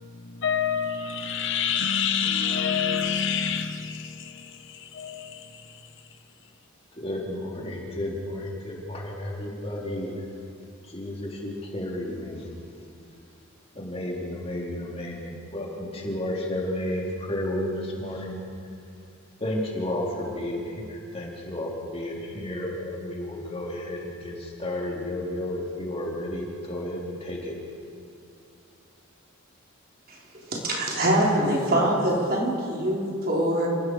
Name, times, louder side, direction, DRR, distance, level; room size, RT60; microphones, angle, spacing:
voice 1, 0.1-5.5, left 7 dB, 55° left, 1.0 m, -27 dB
voice 2, 6.9-10.1 10.8-12.5 13.7-18.4 19.4-27.6, left 1 dB, 30° left, 3.8 m, -32 dB
voice 3, 30.1-33.7, right 1 dB, 45° right, 4.1 m, -24 dB
29.0 x 19.0 x 4.8 m
head